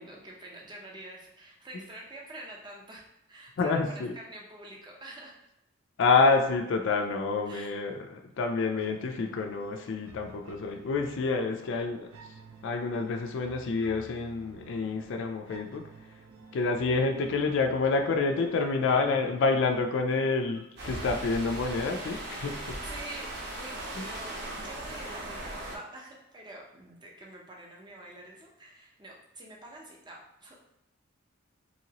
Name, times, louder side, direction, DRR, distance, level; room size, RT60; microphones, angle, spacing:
voice 1, 0.0-3.0 3.3-5.4 7.5-7.7 22.8-30.6, right 1 dB, 20° right, -1 dB, 0.6 m, -46 dB
voice 2, 3.6-4.2 6.0-12.1 12.6-15.8 16.5-22.8 24.0-24.1, left 4 dB, 60° left, 4 dB, 0.3 m, -28 dB
sound 1, 8.8-21.7, right 4 dB, 85° right, 0.5 m, -53 dB
sound 2, 20.8-25.8, right 1 dB, 55° right, 0.8 m, -38 dB
3.0 x 2.8 x 2.8 m, 0.85 s
head